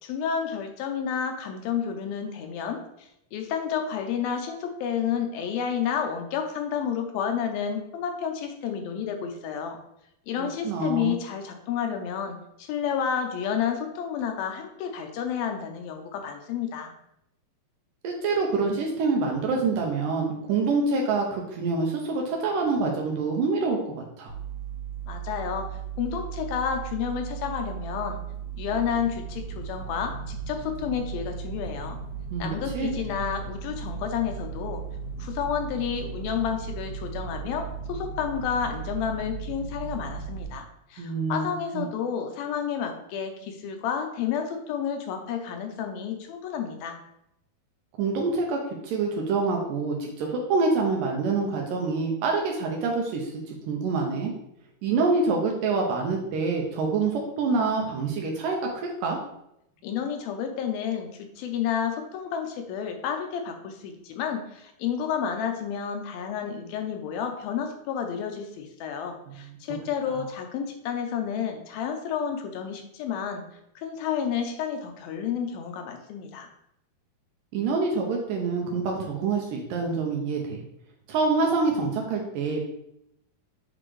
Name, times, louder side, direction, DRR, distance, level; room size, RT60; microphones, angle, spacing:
voice 1, 0.0-9.8 10.3-16.9 25.1-25.7 26.0-28.2 28.6-32.0 32.4-34.8 35.2-47.0 59.8-73.5 73.8-76.5, left 7 dB, 80° left, 5 dB, 2.4 m, -30 dB
voice 2, 10.4-11.2 18.0-24.3 32.3-32.9 41.0-41.5 41.7-41.9 48.0-48.6 48.8-53.3 53.7-54.3 54.8-59.2 77.5-80.6 81.1-82.6, right 4 dB, 75° right, 0 dB, 2.1 m, -26 dB
sound 1, 24.3-40.4, right 6 dB, 55° left, 0.9 m, -36 dB
7.7 x 4.0 x 3.1 m, 0.79 s
omnidirectional pair, 4.4 m